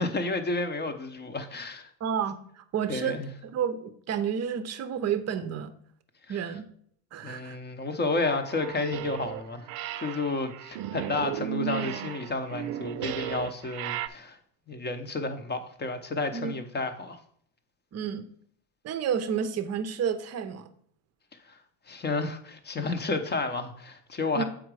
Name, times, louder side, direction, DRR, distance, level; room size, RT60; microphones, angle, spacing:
voice 1, 0.0-1.9 2.9-3.3 6.3-6.5 7.2-9.7 10.0-14.4 14.7-17.2 21.9-24.4, left 3 dB, 20° left, 8 dB, 0.8 m, -31 dB
voice 2, 2.0-5.7 6.3-6.7 7.1-7.6 16.3-16.6 17.9-18.2 18.8-20.7 24.3-24.4, right 7 dB, 30° right, 11 dB, 0.7 m, -30 dB
sound 1, 8.2-9.4 9.7-14.1, right 11 dB, 70° right, 0.6 m, -35 dB
7.2 x 5.0 x 4.7 m, 0.64 s
cardioid pair, 125°, 49 cm